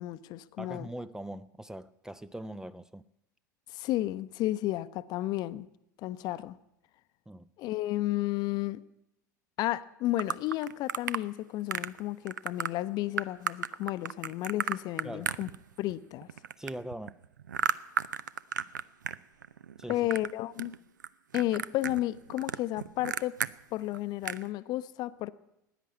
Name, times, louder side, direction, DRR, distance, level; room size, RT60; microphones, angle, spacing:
voice 1, 0.0-0.9 3.7-5.7 6.0-6.6 7.6-8.8 9.6-15.5 15.8-16.3 19.9-20.8 21.3-23.4 23.7-25.3, left 15 dB, 45° left, 0.7 m, -32 dB
voice 2, 0.6-3.0 7.3-7.5 15.0-15.3 16.6-17.2 19.8-20.1, right 1 dB, 5° right, 0.5 m, -41 dB
sound 1, 10.2-11.2 11.7-12.0 12.3-12.7 13.2-15.9 16.2-19.2 19.4-20.3 20.6-21.1 21.3-23.5 23.9-24.0 24.2-24.5, right 8 dB, 75° right, 0.5 m, -33 dB
16.5 x 10.0 x 8.5 m
figure-of-eight pair, 80°, 10 cm